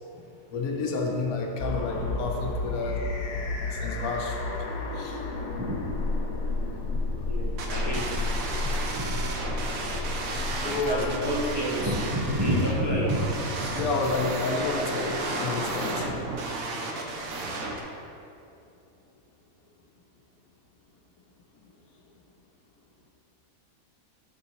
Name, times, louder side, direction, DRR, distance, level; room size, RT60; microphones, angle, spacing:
voice 1, 0.5-3.0 3.7-4.5 4.9-5.2 7.2-7.3 10.5-11.0 13.0-13.2 13.7-16.1, left 3 dB, 85° left, 1 dB, 1.3 m, -30 dB
sound 1, 1.6-16.2, left 2 dB, 60° left, 1.0 m, -33 dB
voice 2, 7.2-8.3 8.6-9.1 9.9-10.1 10.8-13.3 13.8-13.9, equal, 20° right, -6 dB, 0.8 m, -29 dB
sound 2, 7.6-17.8, right 2 dB, 75° right, 1.2 m, -33 dB
7.2 x 6.8 x 3.1 m, 2.7 s
omnidirectional pair, 1.5 m